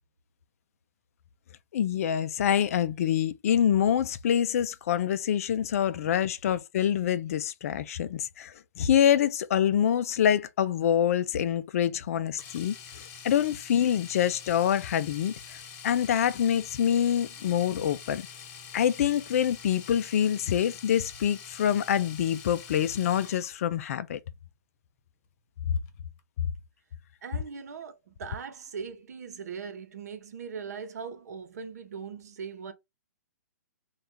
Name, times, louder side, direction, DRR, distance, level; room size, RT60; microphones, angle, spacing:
voice 1, 1.7-18.3 18.7-24.2, left 9 dB, 55° left, 0.4 m, -26 dB
Domestic sounds home sounds, 12.4-23.6 25.8-25.9 26.2-26.3, left 7 dB, 40° left, 1.1 m, -45 dB
voice 2, 27.2-32.7, right 6 dB, 65° right, 0.8 m, -40 dB
3.4 x 2.4 x 4.2 m
hypercardioid pair, 125°, 9 cm